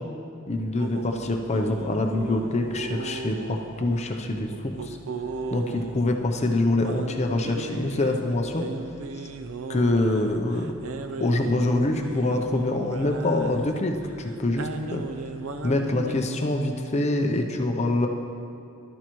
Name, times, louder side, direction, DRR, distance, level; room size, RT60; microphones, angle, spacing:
voice 1, 0.5-5.0 5.5-8.7 9.7-10.7 11.2-15.0 15.6-18.1, left 2 dB, 35° left, 3 dB, 0.6 m, -25 dB
sound 1, 0.8-16.1, right 3 dB, 85° right, 0.6 m, -37 dB
13.5 x 12.0 x 3.1 m, 2.6 s
head